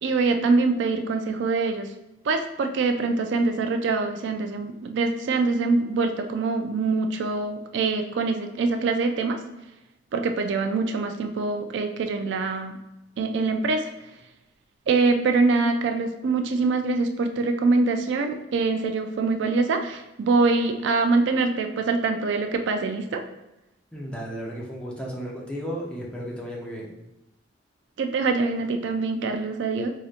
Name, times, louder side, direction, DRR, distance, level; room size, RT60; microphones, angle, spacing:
voice 1, 0.0-1.9 2.2-9.4 10.1-12.8 13.2-13.9 14.9-23.2 28.0-29.9, right 3 dB, 65° right, 6 dB, 0.4 m, -24 dB
voice 2, 23.9-26.9, equal, 5° left, -4 dB, 0.8 m, -34 dB
4.8 x 2.8 x 2.4 m, 0.92 s
head